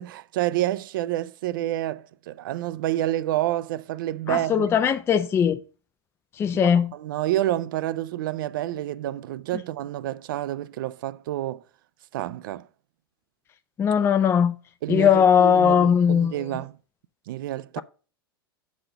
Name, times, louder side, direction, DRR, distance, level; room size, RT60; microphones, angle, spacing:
voice 1, 0.0-4.7 6.6-11.6 12.1-12.7 14.8-16.8 17.3-17.8, right 14 dB, 60° right, 0.4 m, -29 dB
voice 2, 4.3-5.6 6.4-6.9 13.8-14.6 14.9-16.3, left 7 dB, 20° left, 0.4 m, -19 dB
6.6 x 4.1 x 6.6 m
figure-of-eight pair, 95°, 12 cm